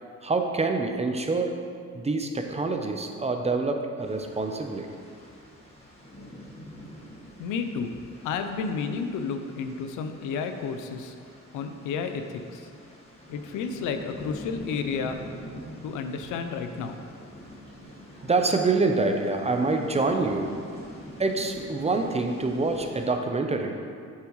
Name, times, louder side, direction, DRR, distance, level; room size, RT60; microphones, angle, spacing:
voice 1, 0.2-1.5 1.9-4.9 18.2-20.5 21.2-23.8, right 3 dB, 20° right, 4 dB, 0.7 m, -26 dB
sound 1, 4.0-23.1, equal, 20° left, 1.5 m, -45 dB
voice 2, 7.4-7.9 8.2-11.1 11.5-12.7 13.3-15.2 15.8-17.0, left 5 dB, 90° left, 7 dB, 0.6 m, -31 dB
7.4 x 7.4 x 3.1 m, 2.2 s
cardioid pair, 90°, 30 cm